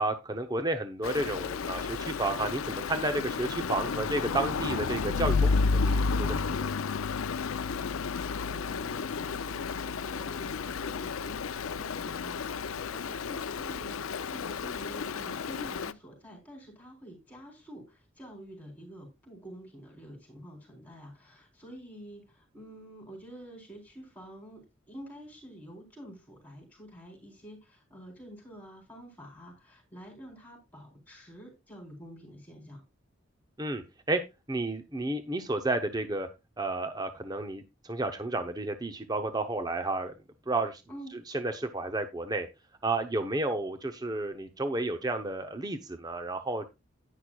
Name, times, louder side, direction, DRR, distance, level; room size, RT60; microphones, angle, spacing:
voice 1, 0.0-6.7 33.6-34.2 34.5-36.3 36.6-40.1 40.5-40.8 41.3-42.5 42.8-46.7, right 2 dB, 20° right, 7 dB, 0.8 m, -32 dB
Stream, 1.0-15.9, left 4 dB, 85° left, 0.5 m, -31 dB
voice 2, 8.0-11.5 11.7-12.3 12.8-24.6 24.9-32.8 40.9-41.2, equal, 10° left, 0 dB, 4.0 m, -48 dB
10.5 x 9.9 x 2.3 m, 0.24 s
head